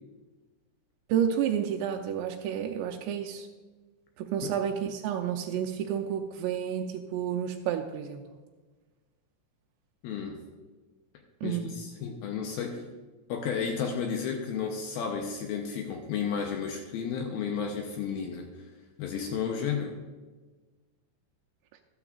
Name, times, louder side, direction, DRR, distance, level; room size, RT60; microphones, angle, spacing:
voice 1, 1.1-3.5 4.2-8.2 11.4-11.8, right 9 dB, 85° right, 3 dB, 2.8 m, -30 dB
voice 2, 10.0-10.4 11.4-12.8 13.3-18.5 19.0-20.0, left 6 dB, 75° left, 3 dB, 2.4 m, -32 dB
13.0 x 13.0 x 2.4 m, 1.3 s
omnidirectional pair, 4.9 m